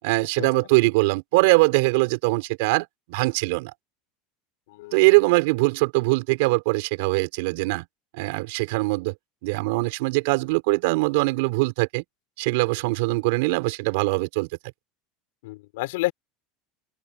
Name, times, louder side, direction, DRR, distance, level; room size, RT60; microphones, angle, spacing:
voice 1, 0.0-3.7 4.9-7.9 8.1-9.1 9.4-12.0 12.4-14.5, right 25 dB, 60° right, 5.7 m, -22 dB
voice 2, 4.7-5.0 15.4-16.1, left 21 dB, 70° left, 6.7 m, -29 dB
open air
supercardioid pair, 175°, 0 cm